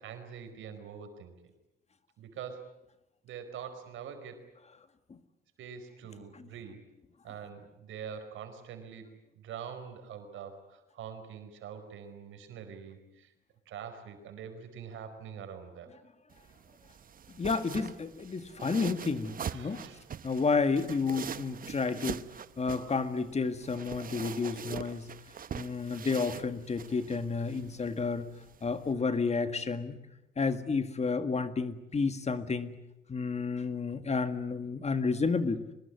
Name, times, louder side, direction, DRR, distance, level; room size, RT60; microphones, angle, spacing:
voice 1, 0.0-1.3 2.2-2.6 3.2-4.4 5.6-6.8 7.2-13.3 13.7-15.9 19.5-20.1, right 7 dB, 80° right, 7 dB, 4.8 m, -44 dB
sound 1, 16.3-28.9, right 7 dB, 45° right, 1.0 m, -43 dB
voice 2, 17.3-19.8 20.2-22.2 22.6-25.1 25.5-28.3 28.6-30.0 30.4-32.8 33.1-35.6, left 4 dB, 35° left, 10 dB, 1.9 m, -31 dB
24.0 x 21.0 x 9.7 m, 0.91 s
cardioid pair, 90°, 20 cm